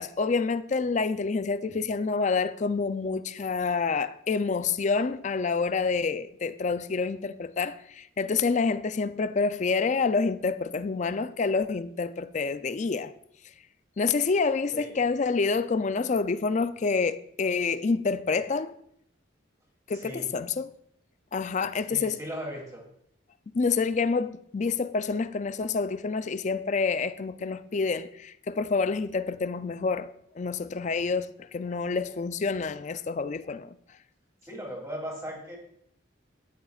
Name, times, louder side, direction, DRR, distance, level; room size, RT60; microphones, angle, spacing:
voice 1, 0.0-13.1 14.0-18.7 19.9-20.7 21.3-22.2 23.5-33.8, left 4 dB, 40° left, 0.4 m, -28 dB
voice 2, 19.9-20.3 21.9-22.8 34.4-35.6, equal, 15° right, 3.0 m, -37 dB
13.0 x 10.5 x 2.4 m
head